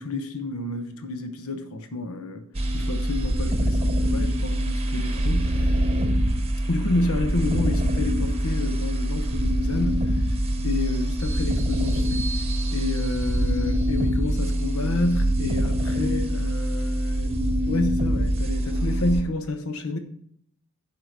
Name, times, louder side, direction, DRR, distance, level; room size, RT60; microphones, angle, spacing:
voice 1, 0.0-2.5 2.7-5.8 6.7-10.2 10.6-12.3 12.7-20.0, left 2 dB, 80° left, 1.0 m, -29 dB
sound 1, 2.5-19.2, equal, 30° right, 1.0 m, -24 dB
11.0 x 4.9 x 6.4 m
head